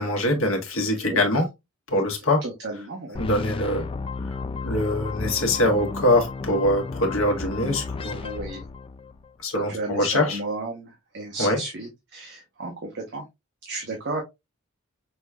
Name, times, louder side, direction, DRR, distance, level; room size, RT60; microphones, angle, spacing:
voice 1, 0.0-1.4 1.9-2.4 3.2-3.8 4.2-4.4 4.6-8.2 9.4-10.4 11.4-11.6, left 1 dB, 70° left, 1.5 m, -23 dB
voice 2, 2.4-3.2 8.2-8.6 9.5-13.2 13.6-14.2, right 2 dB, 55° right, 1.2 m, -33 dB
sound 1, 3.1-9.3, left 4 dB, 25° left, 0.3 m, -33 dB
6.2 x 3.1 x 2.3 m
head